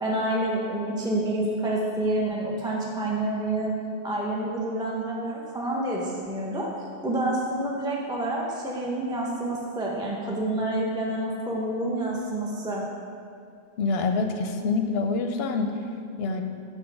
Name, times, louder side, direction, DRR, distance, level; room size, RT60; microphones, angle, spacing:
voice 1, 0.0-3.7 4.0-6.7 7.0-12.8, right 1 dB, 5° right, -3 dB, 0.5 m, -28 dB
voice 2, 13.8-15.7 16.2-16.4, left 4 dB, 65° left, 6 dB, 0.7 m, -26 dB
6.2 x 4.0 x 6.0 m, 2.5 s
omnidirectional pair, 1.2 m